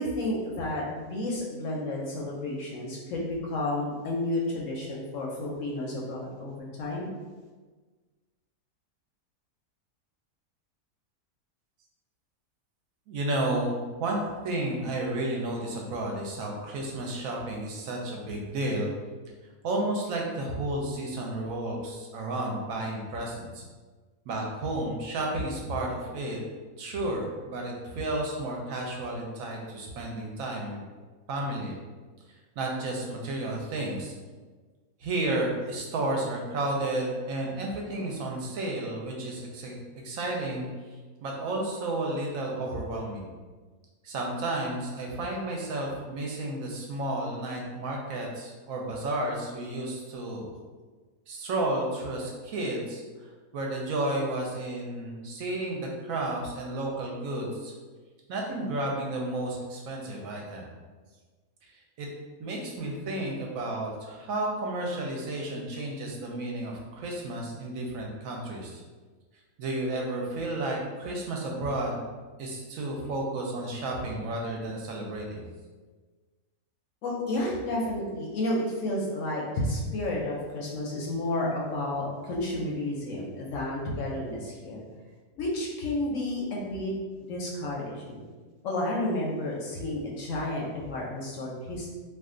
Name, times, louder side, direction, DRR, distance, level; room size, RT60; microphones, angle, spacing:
voice 1, 0.0-7.1 77.0-84.8 85.4-86.9 87.3-88.2 88.6-91.9, left 1 dB, 65° left, -3 dB, 0.8 m, -31 dB
voice 2, 13.1-18.9 19.6-23.6 24.3-26.4 26.8-30.9 31.3-31.7 32.6-34.1 35.0-39.8 40.0-40.7 41.2-43.3 44.0-50.5 51.3-57.7 58.3-60.7 61.6-61.7 62.0-62.1 62.4-68.8 69.6-72.1 72.4-75.4, right 1 dB, 70° right, -1 dB, 0.9 m, -32 dB
2.5 x 2.4 x 3.6 m, 1.4 s
omnidirectional pair, 1.6 m